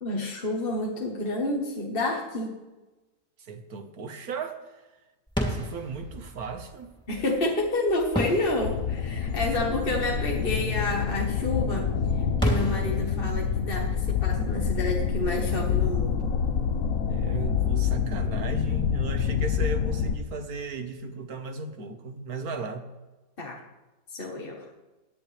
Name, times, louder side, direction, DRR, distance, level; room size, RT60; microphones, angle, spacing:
voice 1, 0.0-2.6 7.1-11.9 12.4-16.2 23.4-23.6 24.1-24.7, left 2 dB, 35° left, -1 dB, 1.6 m, -29 dB
voice 2, 3.4-4.9 5.4-6.9 17.1-22.9, right 4 dB, 70° right, 7 dB, 1.8 m, -36 dB
sound 1, 5.3-15.9, equal, 5° left, 2.8 m, -35 dB
sound 2, 8.6-20.2, left 6 dB, 65° left, 1.3 m, -28 dB
sound 3, 13.7-14.7 15.7-16.6 17.5-18.6 19.3-20.4, left 14 dB, 85° left, 1.6 m, -30 dB
17.5 x 10.5 x 3.4 m, 1.1 s
omnidirectional pair, 1.6 m